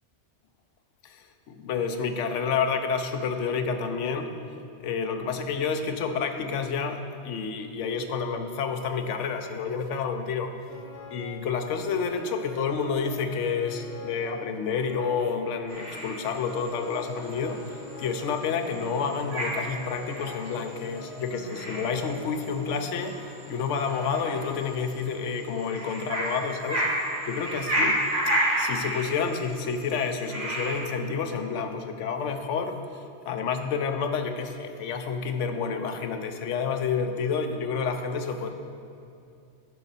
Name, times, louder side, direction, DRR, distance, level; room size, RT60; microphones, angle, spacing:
voice 1, 1.0-4.3 4.8-10.5 11.1-17.6 18.0-26.8 27.3-28.0 28.3-32.8 33.2-38.5, left 5 dB, 90° left, 6 dB, 1.0 m, -29 dB
Piano, 10.7-25.1, left 2 dB, 60° left, 1.4 m, -45 dB
sound 1, 15.7-30.8, right 1 dB, 50° right, 2.3 m, -32 dB
11.0 x 5.0 x 4.1 m, 2.5 s
omnidirectional pair, 1.2 m